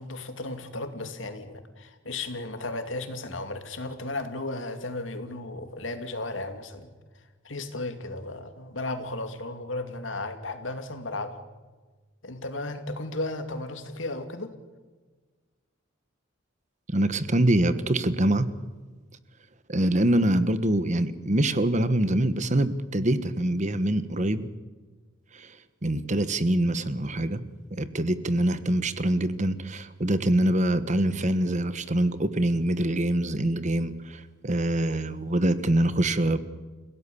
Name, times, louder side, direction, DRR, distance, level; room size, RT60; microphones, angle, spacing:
voice 1, 0.0-6.9 7.4-11.4 12.2-14.5, left 2 dB, 85° left, 7 dB, 2.7 m, -34 dB
voice 2, 16.9-18.5 19.7-24.5 25.3-25.5 25.8-27.4 27.8-36.4, right 1 dB, 40° right, 13 dB, 1.3 m, -24 dB
30.0 x 17.0 x 7.2 m, 1.3 s
head